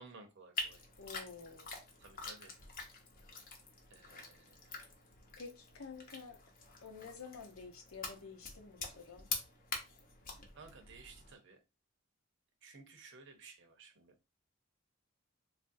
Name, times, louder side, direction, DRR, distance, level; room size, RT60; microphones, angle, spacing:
voice 1, 0.0-0.8 2.0-2.6 3.9-4.7 10.5-11.6 12.6-14.1, right 4 dB, 60° right, 0.7 m, -56 dB
sound 1, 0.5-11.3, left 4 dB, 45° left, 0.7 m, -46 dB
voice 2, 1.0-1.6 5.4-6.4 6.8-9.3, left 5 dB, 85° left, 0.8 m, -50 dB
3.5 x 2.4 x 2.6 m
head